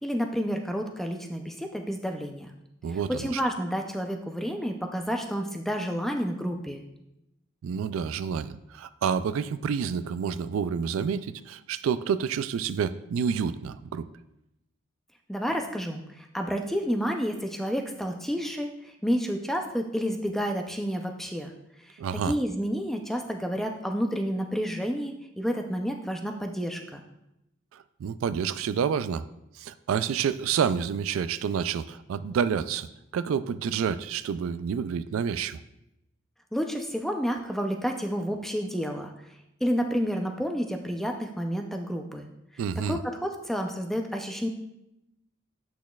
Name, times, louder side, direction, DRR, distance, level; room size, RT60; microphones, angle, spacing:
voice 1, 0.0-2.5 2.9-6.8 15.3-21.5 21.9-22.0 22.3-27.0 36.5-39.1 39.6-42.3 42.9-44.5, equal, ahead, 3 dB, 0.5 m, -30 dB
voice 2, 2.8-3.4 7.6-14.1 22.0-22.3 27.7-29.2 29.6-32.9 33.1-35.6 42.6-43.0, right 7 dB, 85° right, 13 dB, 0.3 m, -29 dB
8.5 x 6.0 x 2.3 m, 0.86 s
head